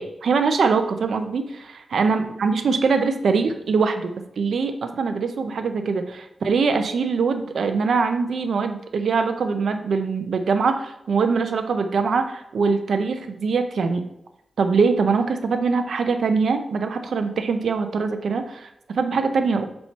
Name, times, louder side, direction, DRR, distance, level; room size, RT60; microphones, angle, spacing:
voice 1, 0.0-14.0 14.6-19.7, right 4 dB, 80° right, 7 dB, 0.6 m, -23 dB
5.5 x 4.3 x 4.4 m, 0.82 s
wide cardioid pair, 100°, 0 cm